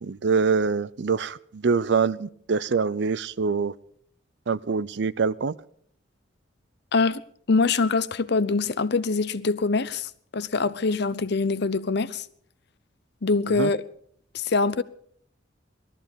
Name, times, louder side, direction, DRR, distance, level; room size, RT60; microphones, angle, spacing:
voice 1, 0.0-3.7 4.5-5.5 13.5-13.7, right 5 dB, 65° right, 0.5 m, -24 dB
voice 2, 6.9-7.2 7.5-12.2 13.2-13.8 14.3-14.8, left 4 dB, 60° left, 0.7 m, -24 dB
19.0 x 13.5 x 5.2 m
head